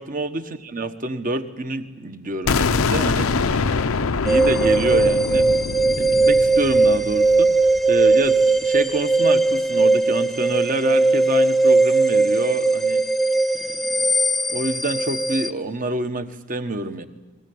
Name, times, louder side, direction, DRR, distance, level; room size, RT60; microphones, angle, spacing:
voice 1, 0.0-3.9 4.2-5.5 6.0-7.5 7.9-13.0 13.6-14.0 14.5-17.1, right 2 dB, 40° right, 9 dB, 1.3 m, -27 dB
sound 1, 2.5-8.3, left 4 dB, 80° left, 0.7 m, -24 dB
sound 2, 4.2-15.5, right 3 dB, ahead, 0.6 m, -19 dB
22.5 x 19.5 x 9.5 m, 1.2 s
head